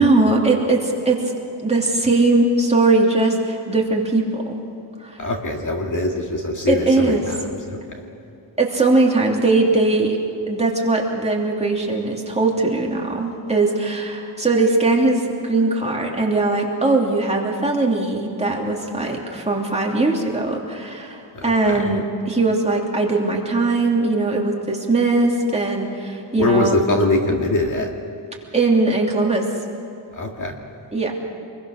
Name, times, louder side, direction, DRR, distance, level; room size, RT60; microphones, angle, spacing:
voice 1, 0.0-1.3 1.6-4.6 5.0-5.3 6.7-7.4 8.6-10.2 10.5-26.8 28.5-29.5 30.9-31.1, right 2 dB, 15° right, -2 dB, 2.9 m, -20 dB
voice 2, 5.2-7.3 7.7-7.8 21.4-21.7 26.4-27.9 30.2-30.5, left 2 dB, 40° left, 1 dB, 2.2 m, -22 dB
28.0 x 22.0 x 6.5 m, 2.8 s
wide cardioid pair, 155°, 49 cm